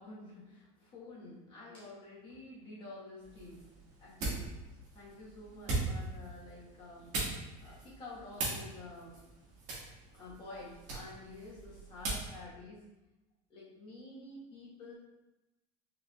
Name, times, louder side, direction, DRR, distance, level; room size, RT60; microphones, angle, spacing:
voice 1, 0.0-3.6 4.0-4.5 4.9-9.2 10.1-12.9 13.5-15.0, left 2 dB, 30° left, -6 dB, 1.3 m, -50 dB
sound 1, 3.2-12.4, right 3 dB, 50° right, 1.5 m, -40 dB
5.0 x 3.3 x 2.3 m, 1.0 s
cardioid pair, 165°, 16 cm